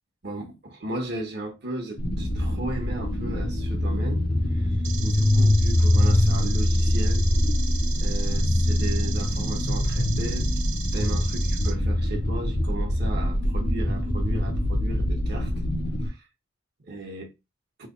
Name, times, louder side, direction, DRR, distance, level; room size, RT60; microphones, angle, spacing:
voice 1, 0.2-4.2 4.5-7.2 8.0-10.5 10.9-15.5 16.0-16.2 16.9-17.3, right 2 dB, 55° right, 1.1 m, -35 dB
sound 1, 2.0-16.1, left 1 dB, 45° left, 0.7 m, -23 dB
sound 2, 4.8-11.7, right 7 dB, 75° right, 0.9 m, -38 dB
3.1 x 2.3 x 3.7 m
head